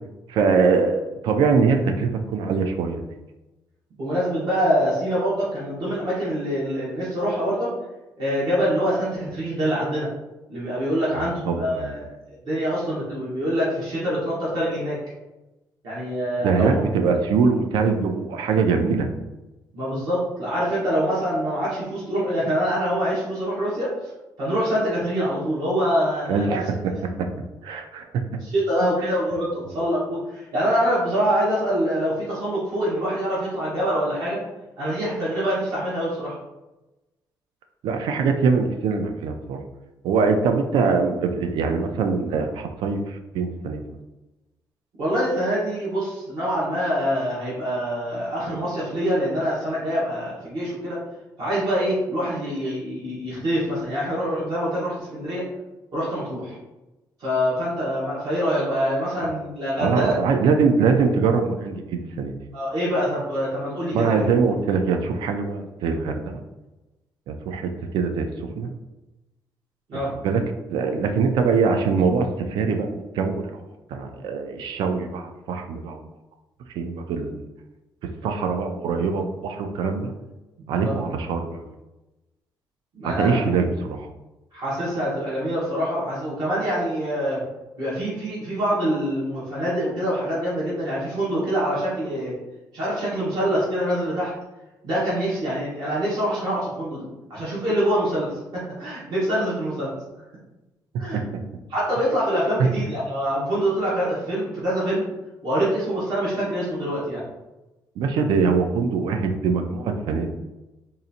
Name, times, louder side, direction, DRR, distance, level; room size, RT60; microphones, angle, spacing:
voice 1, 0.3-3.1 11.1-12.0 16.4-19.1 26.3-27.3 27.6-28.2 29.0-29.2 37.8-39.6 40.0-43.8 59.8-62.4 63.9-66.4 67.3-68.3 68.6-68.7 69.9-70.4 70.7-73.6 73.9-76.0 76.8-77.4 78.2-80.1 80.7-81.6 83.0-84.1 101.1-101.2 108.0-110.3, right 5 dB, 85° right, 5 dB, 0.4 m, -23 dB
voice 2, 4.0-7.7 8.2-10.1 10.5-12.1 12.4-15.0 15.8-16.8 19.7-23.9 24.4-26.6 28.4-34.4 34.8-36.3 45.0-51.0 51.4-55.4 55.9-56.6 57.2-60.2 62.5-64.3 69.9-70.1 80.7-80.9 82.9-83.5 84.5-87.4 87.8-92.3 92.7-94.3 94.8-99.9 101.0-101.2 101.7-105.0 105.4-107.2, equal, 65° right, -8 dB, 1.2 m, -25 dB
3.9 x 2.5 x 2.7 m, 1.0 s
cardioid pair, 170°, 8 cm